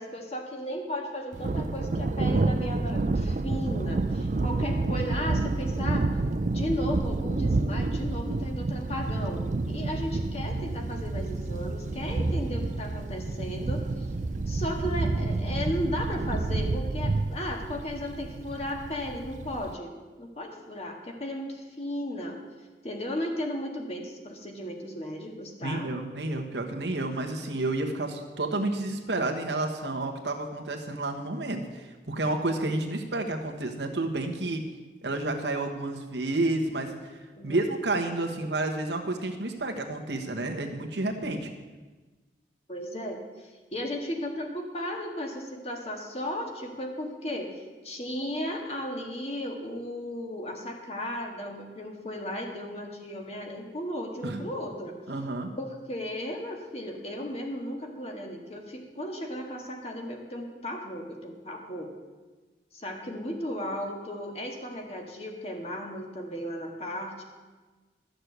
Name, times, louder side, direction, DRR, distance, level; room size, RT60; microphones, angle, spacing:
voice 1, 0.0-6.1 6.5-14.1 14.5-19.9 20.2-22.4 22.8-25.9 37.4-37.6 42.7-47.5 47.8-54.9 55.6-61.9 62.7-67.2, equal, 35° left, 2 dB, 1.8 m, -35 dB
Thunder, 1.3-19.7, right 2 dB, 45° right, 0.4 m, -29 dB
voice 2, 4.2-4.6 25.6-34.6 35.0-41.5 54.2-54.5 55.1-55.5, right 2 dB, 85° right, 3 dB, 1.4 m, -30 dB
13.0 x 6.6 x 8.0 m, 1.3 s
head